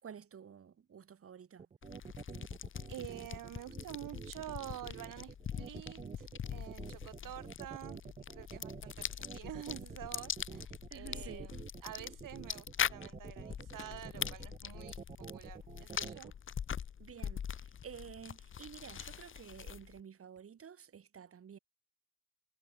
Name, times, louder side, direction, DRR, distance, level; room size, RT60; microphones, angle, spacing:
voice 1, 0.0-1.7 10.9-11.5 17.0-21.6, right 7 dB, 35° right, 5.2 m, -51 dB
sound 1, 1.6-16.3, right 6 dB, 20° right, 0.7 m, -48 dB
sound 2, 1.8-20.0, left 8 dB, 30° left, 1.3 m, -43 dB
voice 2, 2.9-8.0 8.3-11.5 11.8-15.0 15.3-16.3, right 13 dB, 55° right, 2.5 m, -48 dB
cardioid pair, 135°, 39 cm